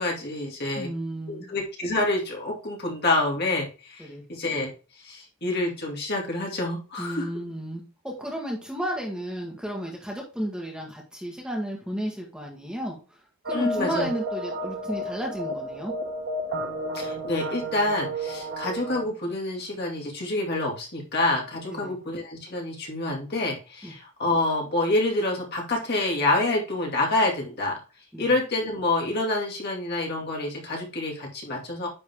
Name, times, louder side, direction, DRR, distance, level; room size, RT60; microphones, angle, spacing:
voice 1, 0.0-0.9 1.3-4.7 5.0-7.3 13.5-14.1 16.9-27.8 28.2-31.9, left 2 dB, 50° left, -1 dB, 2.3 m, -27 dB
voice 2, 0.7-1.5 4.0-4.2 7.0-13.2 13.4-15.9 21.7-21.9 23.8-23.9 28.1-28.3, equal, 5° right, -2 dB, 1.5 m, -33 dB
sound 1, 13.5-19.0, equal, 50° right, 1.3 m, -32 dB
9.9 x 3.9 x 3.6 m, 0.33 s
head